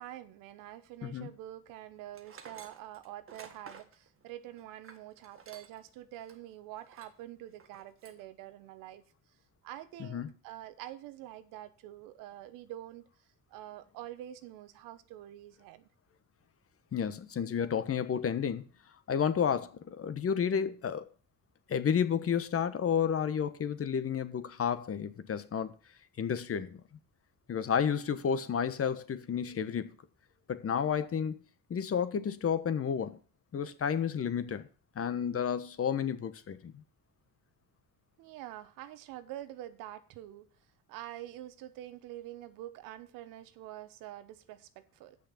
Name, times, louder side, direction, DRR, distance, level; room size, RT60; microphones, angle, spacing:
voice 1, 0.0-9.0 9.6-13.0 13.5-15.9 38.2-40.5 40.9-45.2, right 13 dB, 90° right, 1.0 m, -46 dB
voice 2, 1.0-1.3 10.0-10.3 16.9-18.6 19.1-21.1 21.7-25.7 26.2-26.8 27.5-29.9 30.5-31.4 31.7-33.2 33.5-34.7 34.9-36.8, left 7 dB, 45° left, 1.2 m, -31 dB
Tools, 2.1-5.9 6.2-6.4 6.9-7.2 7.6-8.2, right 6 dB, 40° right, 1.7 m, -52 dB
8.0 x 6.5 x 7.1 m
supercardioid pair, 80°, 32 cm